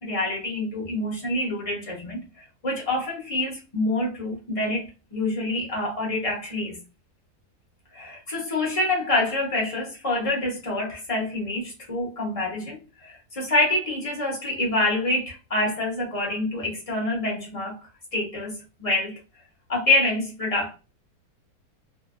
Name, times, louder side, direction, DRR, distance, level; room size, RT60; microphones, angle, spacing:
voice 1, 0.0-6.8 7.9-17.8 18.1-19.2 19.7-20.7, left 2 dB, 30° left, 0.7 m, -26 dB
2.7 x 2.5 x 2.2 m
omnidirectional pair, 1.7 m